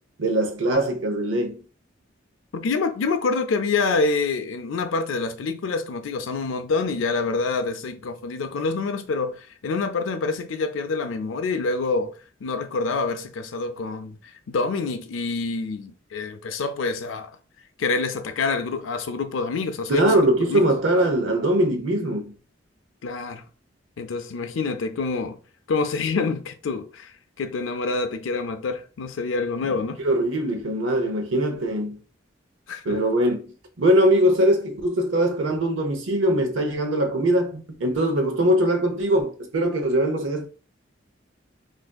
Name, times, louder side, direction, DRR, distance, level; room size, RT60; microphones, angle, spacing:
voice 1, 0.2-1.6 19.9-22.3 29.6-29.7 30.0-32.0 32.8-33.4 33.8-40.5, right 1 dB, 90° right, 0.7 m, -21 dB
voice 2, 2.5-9.4 9.6-12.1 12.4-17.3 17.8-20.6 23.0-23.4 24.0-25.4 25.7-27.1 27.4-30.0 32.7-33.0, left 4 dB, 85° left, 0.4 m, -26 dB
3.5 x 2.6 x 2.2 m
head